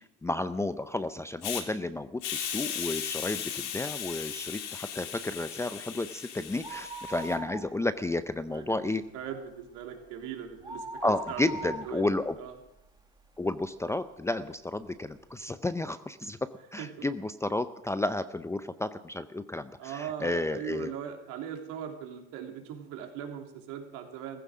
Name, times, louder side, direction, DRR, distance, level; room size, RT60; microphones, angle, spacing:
voice 1, 0.0-9.0 11.0-12.4 13.4-20.9, left 2 dB, 10° left, 12 dB, 0.6 m, -32 dB
Hiss, 1.4-1.6 2.2-7.4, left 9 dB, 90° left, 2.8 m, -37 dB
sound 1, 6.5-8.2 8.5-8.6 9.0-13.4 14.0-14.1 14.8-14.9 15.2-15.3, right 1 dB, 10° right, 1.8 m, -42 dB
voice 2, 8.5-12.0 12.4-12.5 16.8-17.0 19.8-24.4, right 8 dB, 65° right, 3 dB, 3.4 m, -40 dB
15.5 x 15.0 x 6.2 m, 0.87 s
supercardioid pair, 110°, 33 cm